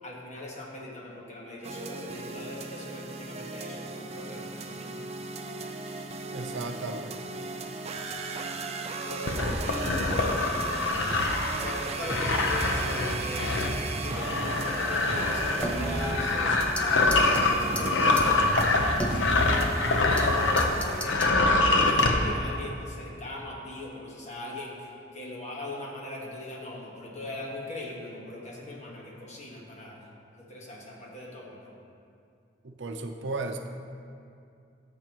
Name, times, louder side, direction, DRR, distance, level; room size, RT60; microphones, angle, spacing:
voice 1, 0.0-4.9 9.0-11.1 11.6-13.5 14.0-19.6 20.1-30.0 30.4-31.7, left 1 dB, 40° left, -2 dB, 1.4 m, -40 dB
sound 1, 1.6-21.0, right 3 dB, 35° right, 0.5 m, -36 dB
voice 2, 6.3-7.5 32.6-33.7, right 3 dB, 80° right, 5 dB, 0.6 m, -35 dB
sound 2, 9.3-20.7 21.0-22.1, left 2 dB, 90° left, 0.8 m, -25 dB
sound 3, 15.6-16.9 17.1-17.4 17.8-17.9 18.2-18.3 18.6-20.3 20.6-21.3 22.0-22.4, equal, 5° left, 0.6 m, -33 dB
13.5 x 6.9 x 3.0 m, 2.5 s
head